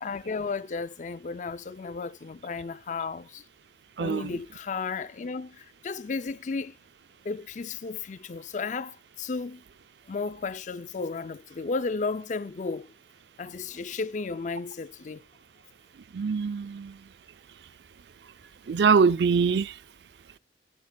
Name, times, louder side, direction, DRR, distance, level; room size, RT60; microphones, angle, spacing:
voice 1, 0.0-3.4 4.0-6.8 7.2-9.6 10.1-12.9 13.4-15.2, left 4 dB, 45° left, 0.4 m, -34 dB
voice 2, 4.0-4.3 16.1-16.9 18.7-19.7, right 5 dB, 70° right, 0.4 m, -23 dB
14.0 x 9.6 x 2.3 m
head